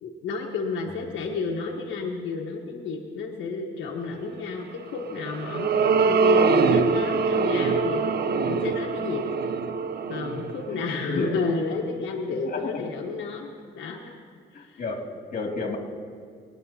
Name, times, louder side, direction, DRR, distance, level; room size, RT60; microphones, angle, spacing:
voice 1, 0.0-8.0 8.5-9.2 10.1-14.1 14.6-14.8, left 4 dB, 75° left, -1 dB, 1.3 m, -31 dB
sound 1, 4.9-11.5, right 4 dB, 55° right, 0.7 m, -24 dB
voice 2, 10.7-11.4 12.3-12.9 14.5-15.8, left 3 dB, 45° left, 1 dB, 2.4 m, -33 dB
26.5 x 9.3 x 2.8 m, 2.2 s
cardioid pair, 90°, 20 cm